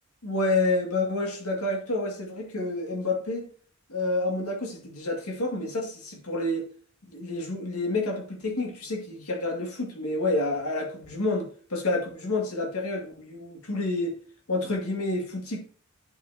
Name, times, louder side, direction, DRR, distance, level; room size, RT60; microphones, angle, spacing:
voice 1, 0.2-3.5 3.9-6.7 7.1-14.2 14.5-15.6, left 2 dB, 75° left, 1 dB, 2.2 m, -29 dB
10.5 x 6.0 x 2.8 m, 0.44 s
head